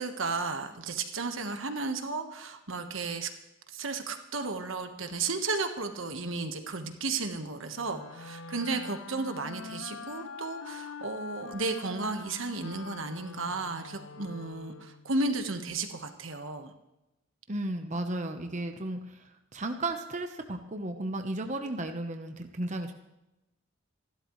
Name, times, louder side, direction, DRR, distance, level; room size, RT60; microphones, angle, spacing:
voice 1, 0.0-3.3 3.7-16.7, right 3 dB, 75° right, 6 dB, 1.4 m, -34 dB
sound 1, 7.7-15.2, left 4 dB, 85° left, 0.9 m, -44 dB
voice 2, 17.5-22.9, right 2 dB, 35° right, 5 dB, 1.0 m, -34 dB
26.5 x 12.5 x 3.2 m, 0.95 s
head